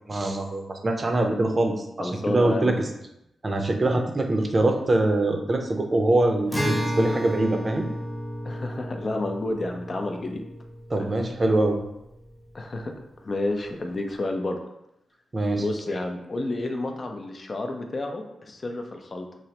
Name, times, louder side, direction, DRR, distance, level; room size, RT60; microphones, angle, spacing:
voice 1, 0.1-2.9 3.4-7.9 10.9-11.8 15.3-15.6, right 2 dB, 40° right, 4 dB, 0.5 m, -23 dB
voice 2, 2.0-2.8 8.4-10.4 11.0-11.1 12.5-12.9 13.2-14.6 15.5-19.3, left 2 dB, 45° left, 4 dB, 0.4 m, -30 dB
Acoustic guitar, 6.5-12.0, equal, ahead, 0.6 m, -32 dB
3.1 x 2.0 x 2.8 m, 0.83 s
supercardioid pair, 50°, 0 cm